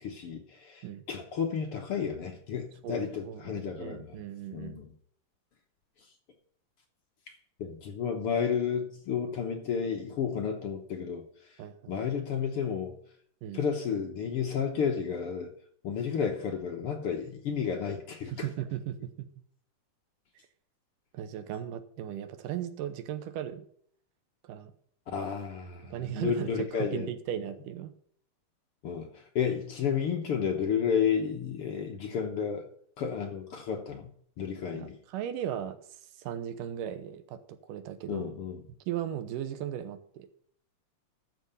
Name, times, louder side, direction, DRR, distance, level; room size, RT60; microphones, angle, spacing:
voice 1, 0.0-4.2 4.5-4.9 7.6-11.2 11.9-13.0 13.5-15.5 15.8-18.5 25.1-27.1 28.8-32.6 33.0-34.1 34.4-35.0 38.1-38.6, left 7 dB, 60° left, 1.5 m, -32 dB
voice 2, 2.8-4.8 11.6-11.9 13.4-13.6 18.3-19.3 21.1-23.7 24.4-24.7 25.8-27.9 34.7-35.8 36.2-38.3 38.9-40.3, right 10 dB, 80° right, 2.5 m, -37 dB
13.5 x 5.1 x 6.7 m
omnidirectional pair, 3.8 m